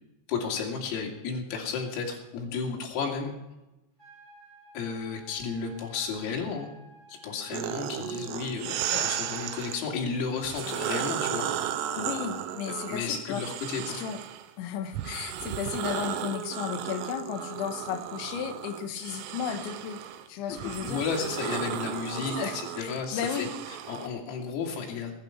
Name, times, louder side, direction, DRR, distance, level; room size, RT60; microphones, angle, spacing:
voice 1, 0.3-3.3 4.8-6.7 7.1-11.5 12.9-14.0 20.5-25.1, left 5 dB, 90° left, 0 dB, 5.4 m, -33 dB
sound 1, 4.0-10.0, right 2 dB, 15° right, 7.0 m, -54 dB
sound 2, 7.5-9.8 10.4-14.5 14.9-24.1, right 10 dB, 85° right, 3.6 m, -34 dB
voice 2, 12.0-13.4 13.9-14.2 14.6-20.0 20.3-21.0 22.1-23.5, left 8 dB, 70° left, 7 dB, 3.4 m, -34 dB
21.0 x 11.5 x 5.8 m, 0.98 s
omnidirectional pair, 5.9 m